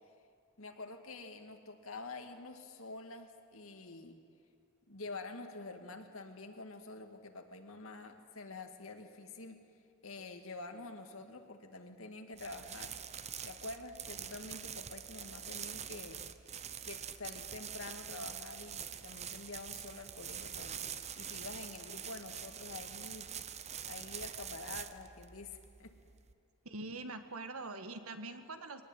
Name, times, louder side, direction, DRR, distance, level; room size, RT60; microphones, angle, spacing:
voice 1, 0.6-4.2 4.9-9.6 10.0-13.0 13.4-16.2 16.8-20.8 21.2-23.3 23.9-25.9, left 3 dB, 70° left, 5 dB, 2.1 m, -47 dB
sound 1, 12.3-26.3, right 8 dB, 30° right, 0.8 m, -45 dB
voice 2, 26.6-28.9, right 2 dB, 85° right, 8 dB, 1.7 m, -44 dB
22.5 x 19.0 x 9.0 m, 2.4 s
head